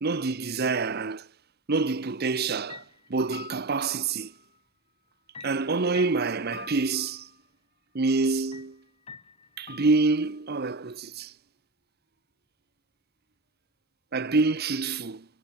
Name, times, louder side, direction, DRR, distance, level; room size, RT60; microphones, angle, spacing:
voice 1, 0.0-1.3 1.7-2.8 3.1-4.3 5.4-7.3 7.9-8.8 9.6-11.3 14.1-15.3, right 3 dB, 45° right, 0.8 m, -26 dB
sound 1, 2.3-2.4 2.7-4.6 5.3-7.4 8.5-8.7 9.1-10.4, left 5 dB, 30° left, 3.7 m, -46 dB
head